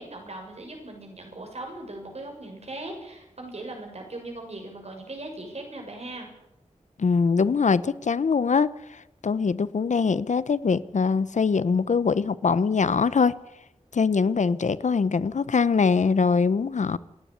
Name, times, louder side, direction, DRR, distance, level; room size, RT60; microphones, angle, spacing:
voice 1, 0.0-6.3, right 2 dB, 60° right, 7.0 m, -39 dB
voice 2, 7.0-13.3 13.9-17.0, left 5 dB, 75° left, 0.8 m, -23 dB
27.5 x 10.5 x 10.0 m
wide cardioid pair, 85°, 12 cm